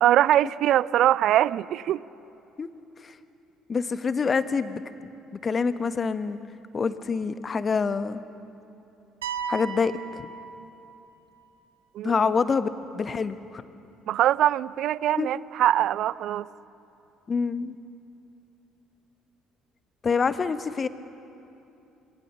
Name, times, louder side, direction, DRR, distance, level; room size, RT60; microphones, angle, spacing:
voice 1, 0.0-2.0 11.9-12.4 14.1-16.5, right 12 dB, 60° right, 19 dB, 0.5 m, -22 dB
voice 2, 3.7-5.1 5.4-6.4 6.7-8.2 9.5-10.3 12.0-12.7 12.9-13.6 15.2-15.3 17.3-17.7 20.0-20.9, left 5 dB, 35° left, 12 dB, 1.2 m, -26 dB
sound 1, 9.2-11.1, right 6 dB, 80° right, 1.2 m, -35 dB
27.0 x 23.5 x 6.8 m, 2.9 s
figure-of-eight pair, 50°, 0 cm